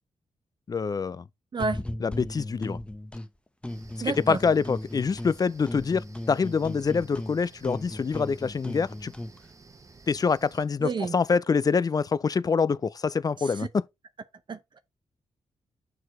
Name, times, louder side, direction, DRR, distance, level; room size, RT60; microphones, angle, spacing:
voice 1, 0.7-1.2 2.0-2.8 4.0-9.1 10.1-13.8, left 5 dB, 35° left, 0.4 m, -25 dB
sound 1, 1.6-3.3 3.6-5.4 5.7-9.4, left 1 dB, 10° left, 0.8 m, -37 dB
sound 2, 3.7-10.7, right 3 dB, 30° right, 1.0 m, -53 dB
voice 2, 4.0-4.4 10.8-11.1 13.4-13.7 14.5-14.8, right 4 dB, 45° right, 0.7 m, -30 dB
6.3 x 4.8 x 4.3 m
cardioid pair, 70°, 11 cm